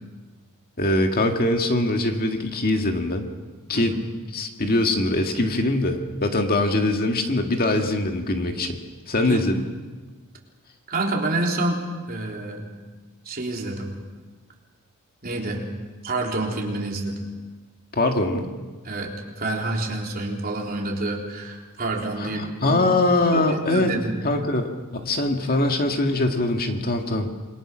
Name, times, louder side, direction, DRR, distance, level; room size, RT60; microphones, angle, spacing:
voice 1, 0.8-3.3 3.7-4.0 4.3-8.8 9.1-9.7 17.9-18.5 22.2-23.9 24.2-27.3, left 2 dB, 45° left, 4 dB, 1.9 m, -22 dB
voice 2, 10.9-11.8 12.1-12.7 13.3-14.0 15.2-15.7 16.0-17.2 18.8-19.1 19.4-22.9 23.3-24.1, right 2 dB, 45° right, 0 dB, 3.6 m, -28 dB
27.5 x 22.5 x 6.3 m, 1.3 s
head